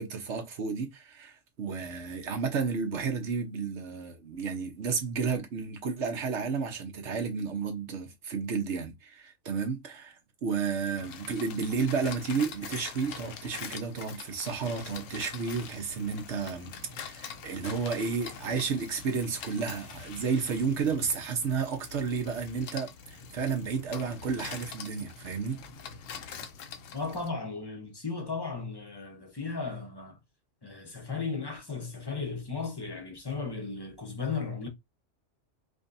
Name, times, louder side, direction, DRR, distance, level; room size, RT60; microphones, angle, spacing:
voice 1, 0.0-16.7 17.0-25.6, right 5 dB, 65° right, 1.2 m, -32 dB
sound 1, 11.0-27.3, left 6 dB, 85° left, 1.1 m, -44 dB
voice 2, 26.9-30.2 30.6-34.7, left 4 dB, 20° left, 0.8 m, -35 dB
5.0 x 2.3 x 2.6 m
omnidirectional pair, 1.3 m